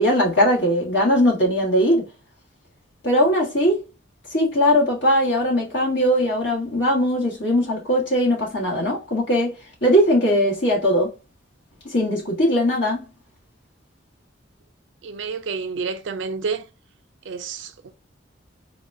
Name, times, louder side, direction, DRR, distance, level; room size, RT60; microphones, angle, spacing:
voice 1, 0.0-2.1 3.0-3.8 4.3-9.5 9.8-11.1 11.9-13.0, equal, 65° left, 1.6 m, -20 dB
voice 2, 15.0-16.7 17.3-17.9, right 5 dB, 80° right, 0.5 m, -29 dB
4.0 x 2.3 x 2.6 m
head